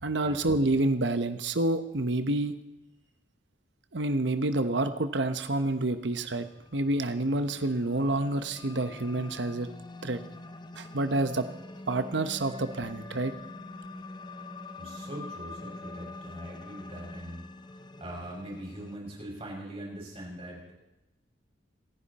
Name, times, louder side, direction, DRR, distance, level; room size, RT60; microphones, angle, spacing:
voice 1, 0.0-2.5 3.9-6.5 6.7-9.7 10.0-10.2 10.8-11.5 11.9-13.3, right 2 dB, 70° right, 10 dB, 1.1 m, -28 dB
sound 1, 5.9-19.0, left 2 dB, 25° left, 0.7 m, -45 dB
voice 2, 14.8-20.8, right 1 dB, 35° right, -3 dB, 6.4 m, -42 dB
27.5 x 10.0 x 4.3 m, 0.97 s
head